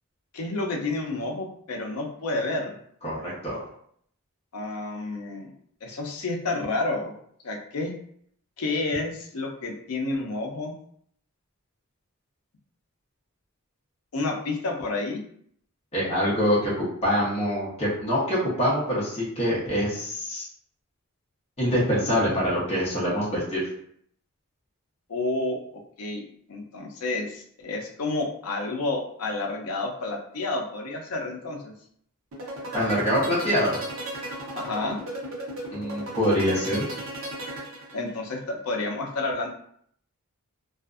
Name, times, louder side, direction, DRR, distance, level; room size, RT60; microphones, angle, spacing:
voice 1, 0.3-2.8 4.5-5.5 5.8-7.1 7.4-7.9 8.6-10.8 14.1-15.2 25.1-26.2 26.5-31.7 34.5-35.0 37.9-39.5, left 2 dB, 75° left, 1 dB, 0.5 m, -30 dB
voice 2, 3.0-3.6 15.9-20.5 21.6-23.6 32.7-33.8 35.7-36.9, equal, 30° left, -7 dB, 0.8 m, -25 dB
sound 1, 32.3-38.3, right 1 dB, 65° right, 0.7 m, -35 dB
2.5 x 2.4 x 2.4 m, 0.65 s
head